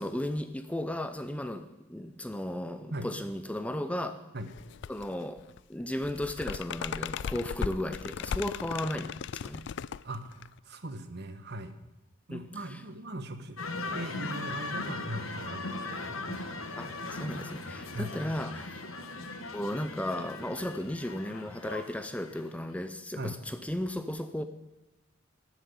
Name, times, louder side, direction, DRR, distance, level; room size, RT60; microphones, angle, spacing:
voice 1, 0.0-4.2 4.9-9.7 12.3-12.4 12.7-12.8 16.8-18.8 19.5-24.4, left 1 dB, 5° left, 9 dB, 0.6 m, -35 dB
sound 1, 4.5-5.1 5.4-10.6, left 7 dB, 60° left, 0.3 m, -37 dB
voice 2, 10.0-11.7 12.3-13.6 13.9-16.5 17.9-18.1 23.2-23.4, right 1 dB, 55° right, 10 dB, 1.2 m, -39 dB
sound 2, 13.6-22.6, left 2 dB, 90° left, 1.5 m, -39 dB
12.5 x 7.5 x 9.6 m, 1.0 s
head